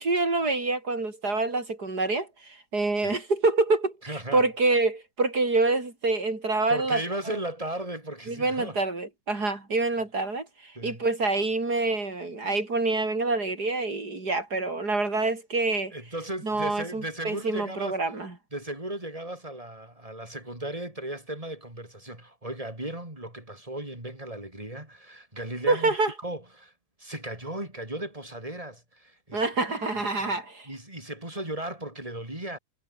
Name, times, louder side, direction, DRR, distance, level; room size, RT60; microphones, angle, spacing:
voice 1, 0.0-7.4 8.3-15.9 16.4-18.4 25.7-26.1 29.3-30.7, right 3 dB, 60° right, 5.1 m, -26 dB
voice 2, 4.0-4.4 6.7-8.8 10.7-11.0 15.9-18.0 18.5-25.9 26.2-26.7 27.0-29.4 30.2-30.3 30.7-32.6, right 1 dB, 20° right, 6.1 m, -36 dB
omnidirectional pair, 1.9 m